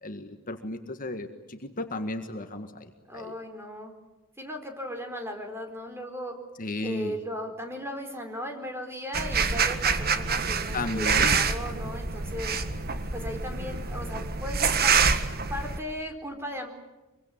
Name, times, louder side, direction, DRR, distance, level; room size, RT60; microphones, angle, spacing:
voice 1, 0.0-3.3 6.6-7.2 10.7-11.4, left 2 dB, 40° left, 7 dB, 1.7 m, -34 dB
voice 2, 3.1-3.9 4.4-6.4 6.8-12.6 13.1-14.9 15.5-16.7, equal, 10° right, 5 dB, 4.5 m, -37 dB
sound 1, 9.1-15.8, right 5 dB, 50° right, 1.7 m, -26 dB
24.5 x 23.5 x 9.0 m, 1.1 s
head